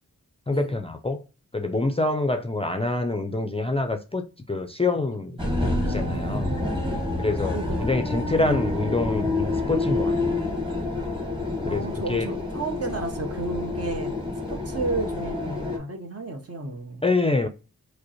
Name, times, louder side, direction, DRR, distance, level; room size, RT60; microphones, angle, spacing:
voice 1, 0.5-1.2 1.5-5.4 5.8-6.5 7.2-10.1 11.7-12.3 17.0-17.5, left 2 dB, 20° left, 0.4 m, -26 dB
voice 2, 5.0-5.5 6.1-6.9 7.5-8.6 11.7-14.1 14.5-17.0, right 2 dB, 45° right, 0.9 m, -33 dB
sound 1, 5.4-15.8, left 2 dB, 15° right, 1.3 m, -28 dB
5.0 x 2.1 x 2.9 m
wide cardioid pair, 75°, 33 cm